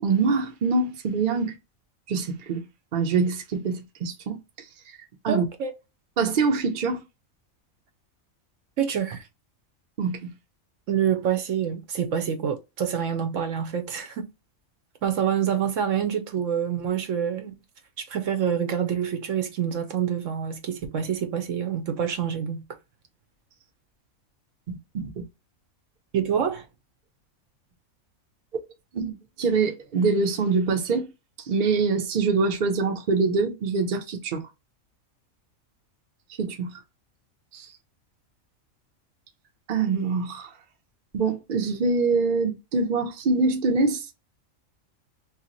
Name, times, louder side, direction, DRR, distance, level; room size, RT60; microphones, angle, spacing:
voice 1, 0.0-1.5 2.1-2.6 2.9-4.4 5.2-5.4 6.2-7.0 10.0-10.3 24.7-25.2 28.9-31.1 31.5-34.4 36.4-36.8 37.5-37.7 39.7-40.5 41.1-44.0, right 4 dB, 45° right, 0.7 m, -24 dB
voice 2, 5.3-5.7 8.8-9.2 10.9-14.3 15.0-17.5 18.0-22.6 26.1-26.7, right 8 dB, 70° right, 1.0 m, -26 dB
2.9 x 2.4 x 3.9 m
omnidirectional pair, 1.4 m